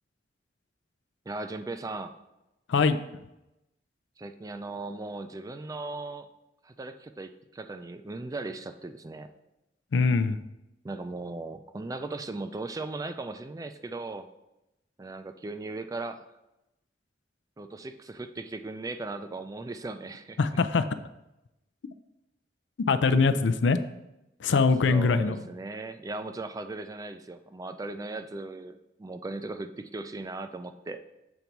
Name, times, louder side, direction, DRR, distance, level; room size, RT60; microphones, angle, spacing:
voice 1, 1.3-2.2 4.2-6.3 6.6-9.3 10.8-14.3 15.0-16.3 17.6-20.4 24.9-31.0, right 2 dB, 20° right, 9 dB, 0.3 m, -38 dB
voice 2, 2.7-3.2 9.9-10.4 20.4-20.9 22.9-23.8 24.4-25.5, left 4 dB, 85° left, 12 dB, 0.4 m, -23 dB
7.1 x 3.9 x 4.5 m, 0.92 s
head